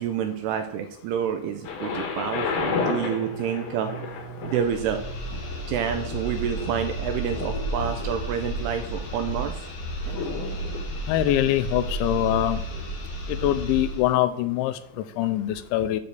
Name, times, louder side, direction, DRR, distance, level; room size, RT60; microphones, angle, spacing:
voice 1, 0.0-3.9 4.4-5.0 5.3-5.4 5.7-9.6, right 8 dB, 80° right, 6 dB, 2.4 m, -28 dB
Thunder, 1.6-13.5 14.2-14.3, left 5 dB, 65° left, 2.1 m, -35 dB
sound 1, 2.0-8.9, right 3 dB, 25° right, 2.0 m, -42 dB
sound 2, 4.5-14.1, right 1 dB, 50° left, 1.9 m, -32 dB
voice 2, 11.1-12.6 13.3-16.0, left 13 dB, 90° left, 11 dB, 3.0 m, -24 dB
9.1 x 3.9 x 6.8 m, 0.68 s
omnidirectional pair, 5.2 m